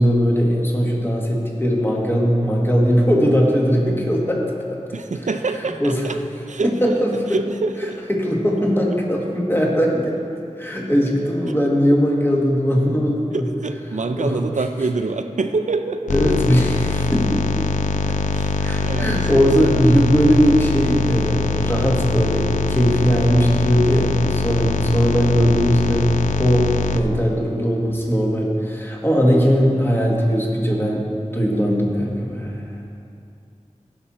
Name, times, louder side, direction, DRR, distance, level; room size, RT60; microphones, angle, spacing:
voice 1, 0.0-4.4 4.7-4.8 5.6-6.1 6.6-7.4 8.1-10.2 10.6-13.5 14.2-14.4 16.1-17.5 18.1-18.2 18.6-26.1 26.4-31.1 31.3-32.8, equal, 15° left, -2 dB, 1.8 m, -19 dB
voice 2, 4.9-6.2 6.5-6.9 7.3-8.0 13.3-16.1 18.3-19.7, right 3 dB, 70° right, 7 dB, 0.5 m, -26 dB
sound 1, 16.1-27.0, left 4 dB, 70° left, 0.4 m, -22 dB
16.0 x 6.0 x 4.3 m, 2.5 s
wide cardioid pair, 50°, 13 cm